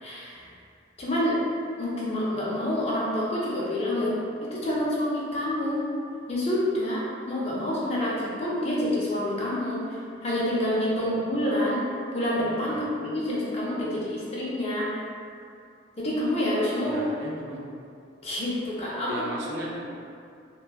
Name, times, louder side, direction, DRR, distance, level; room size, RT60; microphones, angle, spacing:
voice 1, 0.0-0.5 1.0-1.4 1.8-4.2 4.4-5.8 6.3-14.9 16.0-17.0 18.2-19.3, left 1 dB, 30° left, -6 dB, 0.5 m, -27 dB
voice 2, 12.6-13.1 16.8-17.6 19.1-19.8, right 1 dB, 70° right, -3 dB, 0.4 m, -36 dB
2.8 x 2.3 x 2.3 m, 2.4 s
head